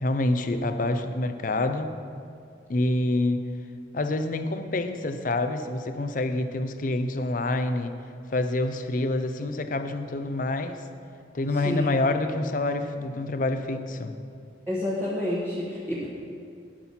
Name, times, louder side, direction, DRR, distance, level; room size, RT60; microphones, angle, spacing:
voice 1, 0.0-1.9 2.7-3.4 3.9-8.0 8.3-10.8 11.3-14.1, left 2 dB, 45° left, 8 dB, 0.6 m, -27 dB
voice 2, 14.7-16.1, left 1 dB, 15° right, -8 dB, 1.2 m, -29 dB
11.5 x 6.1 x 5.7 m, 2.3 s
head